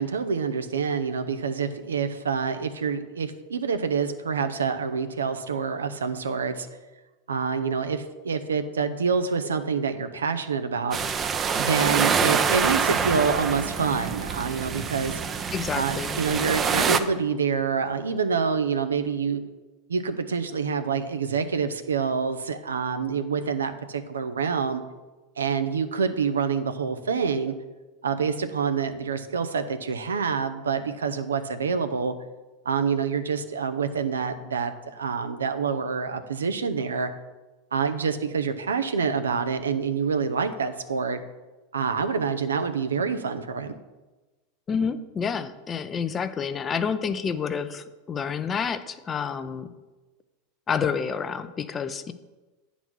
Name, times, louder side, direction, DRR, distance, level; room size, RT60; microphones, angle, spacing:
voice 1, 0.0-6.7 7.3-11.0 11.6-15.2 15.8-19.4 19.9-24.8 25.4-27.5 28.0-32.1 32.7-37.1 37.7-41.2 41.7-43.7, right 5 dB, 90° right, 9 dB, 0.6 m, -27 dB
sound 1, 10.9-17.0, right 6 dB, 30° right, 0.6 m, -26 dB
voice 2, 15.5-16.2 44.7-49.7 50.7-52.1, left 6 dB, 30° left, 12 dB, 0.6 m, -29 dB
9.1 x 4.1 x 6.1 m, 1.2 s
hypercardioid pair, 95°, 0 cm